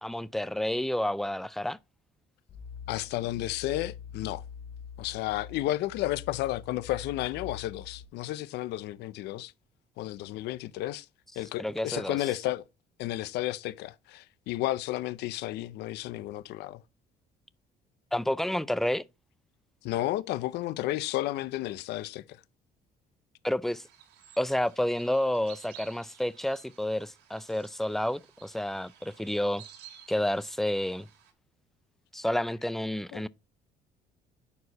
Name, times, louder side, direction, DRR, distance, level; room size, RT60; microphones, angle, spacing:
voice 1, 0.0-1.8 11.6-12.2 18.1-19.0 23.4-23.8 24.4-29.6 30.1-31.1 32.1-33.3, left 1 dB, ahead, 0.4 m, -30 dB
sound 1, 2.5-8.0, left 7 dB, 60° left, 2.3 m, -44 dB
voice 2, 2.9-4.4 5.0-9.5 10.0-11.1 11.4-12.6 13.0-16.8 19.8-22.2 33.1-33.2, left 15 dB, 85° left, 0.6 m, -32 dB
sound 2, 23.7-31.3, right 9 dB, 90° right, 2.3 m, -54 dB
11.0 x 4.6 x 4.1 m
cardioid pair, 110°, 17 cm